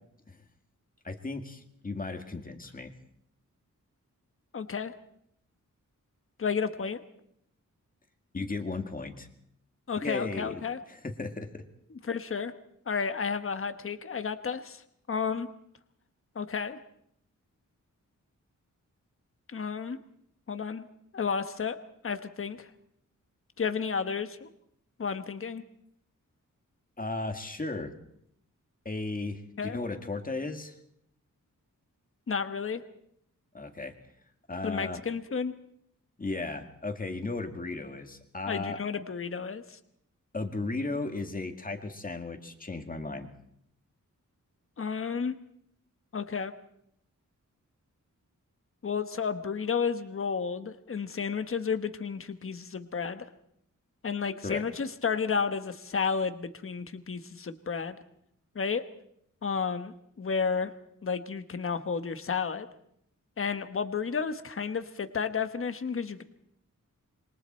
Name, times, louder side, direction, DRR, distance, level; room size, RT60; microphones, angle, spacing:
voice 1, 1.0-2.9 8.3-9.3 10.0-10.6 10.9-11.6 27.0-28.0 28.9-30.7 33.5-33.9 34.5-35.0 36.2-38.8 40.3-43.3 54.4-54.6, left 3 dB, 25° left, 5 dB, 2.1 m, -35 dB
voice 2, 4.5-4.9 6.4-7.0 9.9-10.8 12.0-12.5 12.9-14.8 15.1-15.5 16.3-16.8 19.5-20.0 20.5-20.8 21.1-21.8 22.0-22.7 23.6-24.5 25.0-25.6 29.6-29.8 32.3-32.8 34.6-35.5 38.5-39.8 44.8-45.3 46.1-46.5 48.8-53.2 54.0-58.0 58.5-58.8 59.4-60.7 61.0-62.7 63.4-66.2, left 6 dB, 40° left, 9 dB, 1.2 m, -32 dB
27.0 x 24.0 x 4.4 m, 0.71 s
wide cardioid pair, 165°, 32 cm